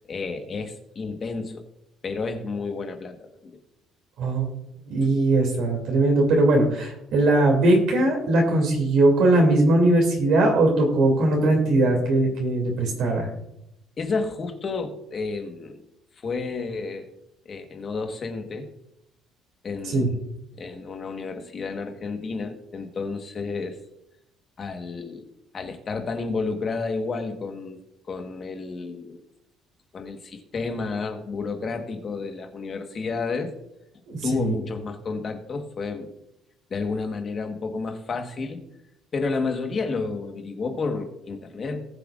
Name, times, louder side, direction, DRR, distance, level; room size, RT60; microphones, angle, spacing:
voice 1, 0.1-1.7 2.0-3.6 14.0-15.8 16.2-17.1 17.4-18.7 19.6-20.2 20.6-23.8 24.6-25.3 25.5-27.8 28.1-29.2 29.9-33.5 34.2-36.1 36.7-38.6 39.1-41.8, left 4 dB, 30° left, 5 dB, 1.3 m, -31 dB
voice 2, 4.2-4.5 4.9-13.3 19.8-20.1 34.1-34.6, right 2 dB, 60° right, 0 dB, 2.6 m, -20 dB
19.5 x 7.7 x 2.5 m, 0.84 s
cardioid pair, 175°, 0 cm